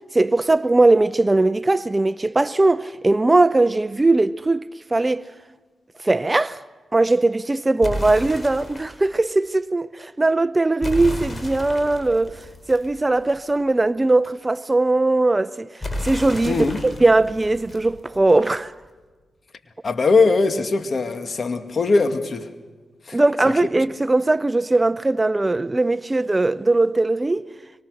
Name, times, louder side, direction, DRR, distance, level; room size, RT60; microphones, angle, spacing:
voice 1, 0.1-4.6 4.9-5.3 6.0-6.6 6.9-12.4 12.7-15.7 16.0-18.7 23.1-27.5, right 2 dB, 25° right, 0.6 m, -19 dB
sound 1, 7.8-9.1 10.8-13.5 15.8-18.5, left 1 dB, 25° left, 5.2 m, -33 dB
voice 2, 16.5-16.8 19.8-22.5 23.1-23.2, left 3 dB, 55° left, 2.1 m, -20 dB
24.5 x 24.0 x 6.5 m
supercardioid pair, 50°, 0 cm